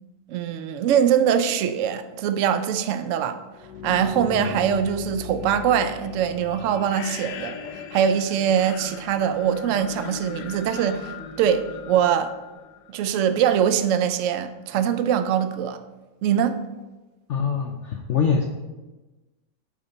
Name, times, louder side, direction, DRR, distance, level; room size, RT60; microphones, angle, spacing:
voice 1, 0.3-3.4 3.8-7.6 7.9-12.3 12.9-15.8 16.2-16.6, right 8 dB, 70° right, 10 dB, 0.7 m, -23 dB
sound 1, 3.5-13.4, left 7 dB, 80° left, 1.2 m, -37 dB
voice 2, 17.3-18.4, left 6 dB, 65° left, 2 dB, 0.7 m, -23 dB
7.2 x 5.1 x 4.0 m, 1.1 s
omnidirectional pair, 1.8 m